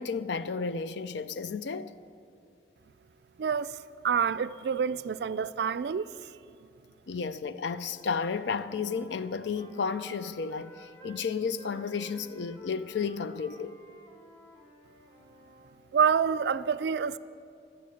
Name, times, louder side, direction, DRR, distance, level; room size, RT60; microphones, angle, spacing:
voice 1, 0.0-1.9 7.1-13.8, left 5 dB, 80° left, 0.5 m, -32 dB
voice 2, 3.4-6.3 15.9-17.2, right 7 dB, 65° right, 0.3 m, -28 dB
Wind instrument woodwind instrument, 7.7-11.3 11.6-15.8, equal, 15° left, 1.9 m, -53 dB
12.0 x 9.3 x 8.5 m
head